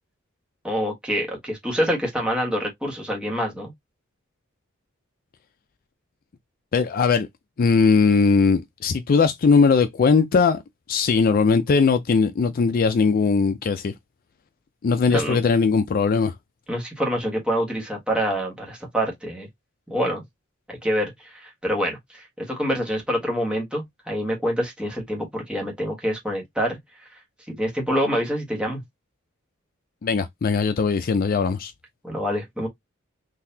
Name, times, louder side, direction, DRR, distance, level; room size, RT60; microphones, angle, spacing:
voice 1, 0.6-3.7 15.1-15.4 16.7-19.5 19.9-20.2 20.7-26.8 27.5-28.8 32.0-32.7, equal, 5° right, 1.4 m, -26 dB
voice 2, 6.7-7.3 7.6-10.6 10.9-13.9 14.8-16.3 30.0-31.7, left 5 dB, 45° left, 0.4 m, -19 dB
3.9 x 2.6 x 2.7 m
head